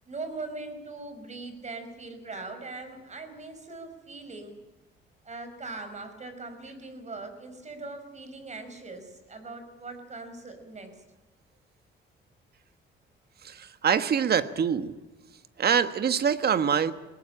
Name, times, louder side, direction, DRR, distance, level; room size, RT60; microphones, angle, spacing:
voice 1, 0.1-4.5 5.2-10.9, right 3 dB, 35° right, 8 dB, 5.1 m, -40 dB
voice 2, 13.4-14.9 15.6-16.9, right 7 dB, 55° right, 11 dB, 1.4 m, -25 dB
20.5 x 18.5 x 8.8 m, 1.1 s
cardioid pair, 90°, 20 cm